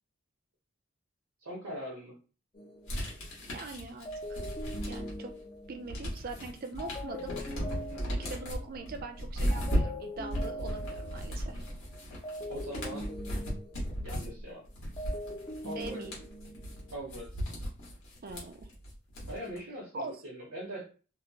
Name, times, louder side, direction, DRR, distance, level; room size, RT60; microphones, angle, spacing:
voice 1, 1.4-2.2 7.9-8.3 12.5-13.1 14.0-14.7 15.6-16.0 16.9-17.3 19.3-20.9, equal, 75° right, -4 dB, 0.9 m, -41 dB
sound 1, 2.5-3.5 4.1-9.2 9.5-14.5 14.8-17.0, left 1 dB, 25° left, 0.5 m, -43 dB
sound 2, 2.9-5.3 5.6-19.6, equal, 75° left, 1.2 m, -36 dB
voice 2, 3.5-4.4 4.9-5.3 5.7-7.3 8.1-11.6 15.8-16.2 18.2-18.7 19.9-20.2, right 3 dB, 40° right, 7 dB, 0.4 m, -42 dB
2.8 x 2.0 x 2.7 m, 0.35 s
head